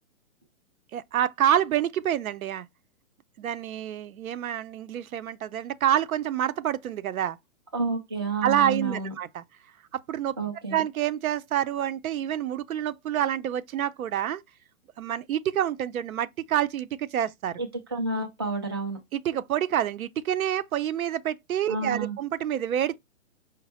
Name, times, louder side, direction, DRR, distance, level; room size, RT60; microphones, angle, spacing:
voice 1, 0.9-2.7 3.4-7.4 8.4-9.4 10.1-10.4 10.7-14.4 15.0-17.6 19.1-23.0, right 10 dB, 85° right, 0.7 m, -27 dB
voice 2, 7.7-9.1 10.4-10.8 17.6-19.0 21.7-22.2, right 3 dB, 20° right, 0.3 m, -30 dB
5.2 x 2.1 x 4.1 m
hypercardioid pair, 160°, 41 cm